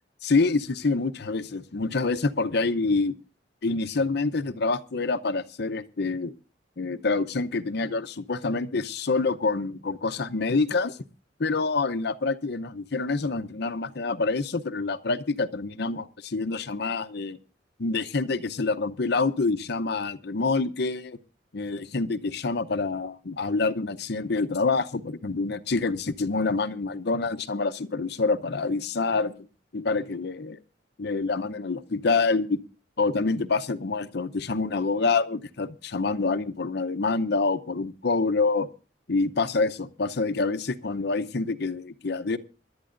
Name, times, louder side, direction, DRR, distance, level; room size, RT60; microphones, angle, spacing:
voice 1, 0.2-3.1 3.6-6.3 6.8-11.0 11.4-17.4 17.8-21.2 21.5-29.5 29.7-30.6 31.0-32.6 33.0-38.7 39.1-42.4, left 3 dB, 60° left, 10 dB, 0.7 m, -27 dB
26.0 x 11.0 x 2.5 m, 0.33 s
head